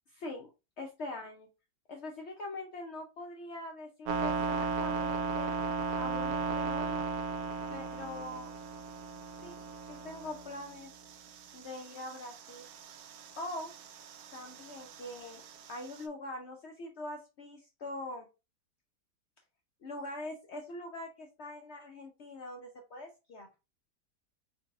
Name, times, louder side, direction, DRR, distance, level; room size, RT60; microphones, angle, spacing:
voice 1, 0.1-0.5 0.8-1.5 1.9-5.5 5.9-7.1 7.7-8.5 9.4-10.9 11.5-12.7 13.4-13.7 14.3-15.4 15.7-18.3 19.8-23.5, left 2 dB, 70° left, 2 dB, 0.6 m, -43 dB
sound 1, 4.0-16.0, right 4 dB, 75° right, 1.0 m, -37 dB
4.0 x 2.2 x 3.5 m, 0.29 s
omnidirectional pair, 1.8 m